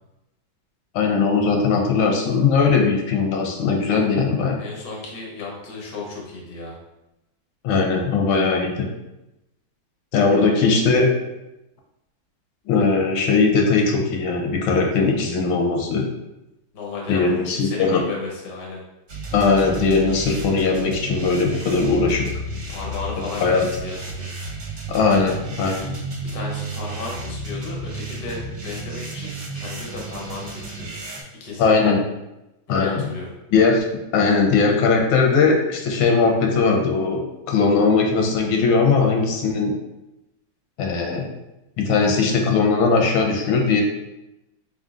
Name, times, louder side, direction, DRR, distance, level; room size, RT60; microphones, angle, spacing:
voice 1, 0.9-4.6 7.6-8.9 10.1-11.1 12.7-16.1 17.1-18.0 19.3-22.3 23.4-23.7 24.9-25.9 31.6-32.0 32.7-33.0 33.5-33.9 34.1-37.2 37.5-39.7 40.8-41.3 41.8-43.8, left 4 dB, 90° left, 1 dB, 1.5 m, -19 dB
voice 2, 4.6-6.8 10.3-10.5 16.7-18.8 22.7-24.3 26.2-31.7 32.7-33.3, left 3 dB, 45° left, -2 dB, 0.7 m, -34 dB
sound 1, 19.1-31.2, right 2 dB, 50° right, 0.9 m, -32 dB
4.0 x 3.7 x 2.5 m, 0.94 s
omnidirectional pair, 2.1 m